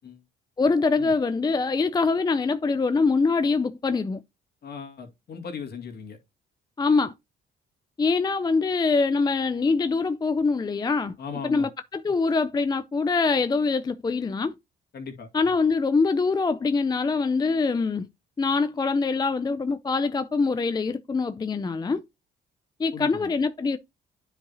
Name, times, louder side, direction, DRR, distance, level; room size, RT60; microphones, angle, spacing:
voice 1, 0.6-4.2 6.8-7.1 8.0-11.2 11.4-14.5 15.3-18.1 18.4-22.0 22.8-23.8, left 4 dB, 20° left, 0.4 m, -24 dB
voice 2, 4.6-6.2 11.2-11.7 14.9-15.3 22.9-23.3, left 6 dB, 55° left, 2.1 m, -37 dB
9.7 x 4.8 x 2.6 m
cardioid pair, 90°, 20 cm